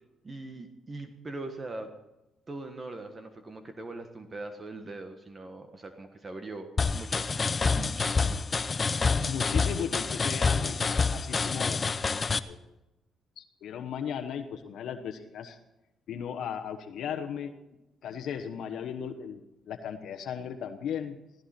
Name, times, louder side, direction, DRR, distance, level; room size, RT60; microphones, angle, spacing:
voice 1, 0.2-1.9 2.5-7.3 7.6-8.4, right 2 dB, 30° right, 6 dB, 1.4 m, -41 dB
sound 1, 6.8-12.4, left 4 dB, 35° left, 0.6 m, -27 dB
voice 2, 9.2-11.8 12.5-12.6 13.4-15.6 16.1-17.5 18.0-21.2, left 8 dB, 75° left, 5 dB, 1.1 m, -36 dB
16.0 x 14.5 x 4.4 m, 0.95 s
cardioid pair, 90°, 0 cm